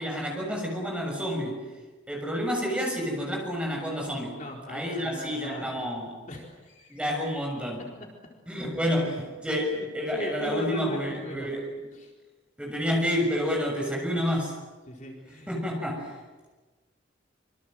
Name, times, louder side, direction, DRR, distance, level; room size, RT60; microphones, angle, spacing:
voice 1, 0.0-1.6 2.1-4.4 4.7-6.1 6.9-7.9 8.5-11.9 12.6-14.5 15.5-16.1, equal, 5° right, 1 dB, 6.8 m, -29 dB
voice 2, 4.4-5.9 6.3-7.0 9.7-9.9 10.2-11.5 12.0-12.1 14.9-15.5, left 1 dB, 40° left, 0 dB, 4.3 m, -38 dB
26.5 x 24.5 x 7.8 m, 1.3 s
head